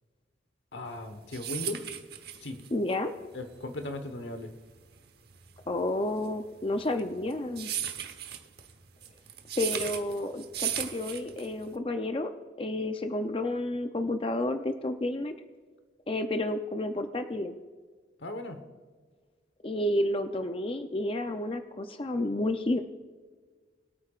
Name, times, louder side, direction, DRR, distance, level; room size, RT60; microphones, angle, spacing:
voice 1, 0.7-1.8 2.4-2.6 3.3-4.5 18.2-18.6, left 2 dB, 75° left, 7 dB, 1.1 m, -37 dB
sound 1, 1.0-11.7, right 10 dB, 60° right, 1.0 m, -37 dB
voice 2, 2.7-3.1 5.7-7.7 9.6-12.3 12.6-15.3 16.1-17.5 19.6-22.8, left 1 dB, 30° left, 7 dB, 0.6 m, -30 dB
23.0 x 8.7 x 2.4 m, 1.5 s
head